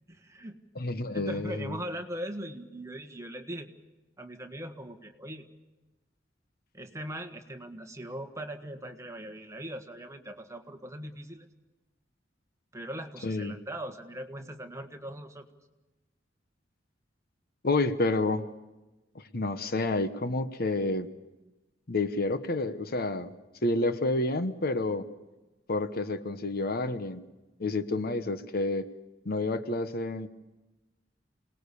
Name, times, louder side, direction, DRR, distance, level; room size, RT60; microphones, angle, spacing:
voice 1, 0.1-0.6 1.1-3.7 4.2-5.5 6.7-11.5 12.7-15.5, right 1 dB, 15° right, 6 dB, 1.6 m, -40 dB
voice 2, 0.7-1.8 13.2-13.6 17.6-18.5 19.1-21.1 21.9-23.3 23.6-25.0 25.7-27.2 27.6-28.9 29.2-30.3, left 2 dB, 55° left, 10 dB, 1.1 m, -29 dB
28.0 x 19.5 x 6.9 m, 1.1 s
head